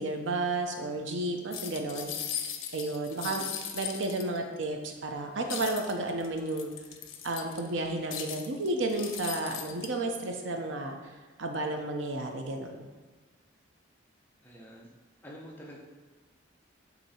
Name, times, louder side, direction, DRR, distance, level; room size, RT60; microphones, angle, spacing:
voice 1, 0.0-2.1 2.7-3.4 3.7-6.7 7.2-11.1 11.4-12.9, right 2 dB, 70° right, 3 dB, 0.7 m, -32 dB
sound 1, 1.5-4.6 5.5-7.7 8.1-9.9, left 8 dB, 85° left, 0.6 m, -38 dB
voice 2, 14.4-14.9 15.2-15.8, equal, 10° left, -3 dB, 0.8 m, -47 dB
8.2 x 2.9 x 4.3 m, 1.3 s
head